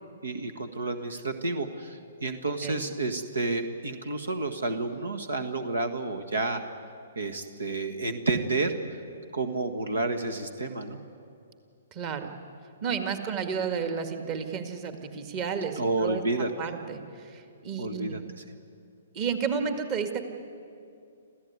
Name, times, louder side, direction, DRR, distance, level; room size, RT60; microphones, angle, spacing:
voice 1, 0.2-6.6 7.1-8.7 9.3-11.0 15.8-16.5 17.8-18.4, right 3 dB, 80° right, 9 dB, 1.6 m, -30 dB
voice 2, 11.9-12.3 12.8-16.2 16.6-17.0 17.3-18.2 19.1-20.3, right 6 dB, 35° right, 7 dB, 2.0 m, -31 dB
27.0 x 15.0 x 9.5 m, 2.5 s
figure-of-eight pair, 125°, 0 cm